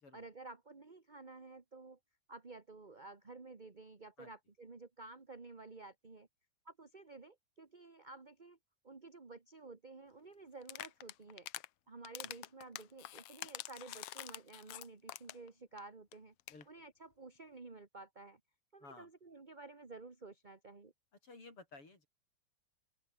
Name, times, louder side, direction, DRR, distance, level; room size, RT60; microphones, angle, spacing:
voice 1, 0.1-2.0 2.3-6.3 6.6-8.6 8.8-11.5 11.9-16.3 16.7-18.4 18.7-20.9, right 3 dB, 25° right, 1.2 m, -53 dB
sound 1, 10.6-11.7 12.0-15.5 15.8-15.9 16.1-16.2 16.4-16.6, left 15 dB, 75° left, 1.4 m, -46 dB
voice 2, 18.8-19.1 21.2-22.1, left 3 dB, 45° left, 7.6 m, -55 dB
open air
omnidirectional pair, 3.4 m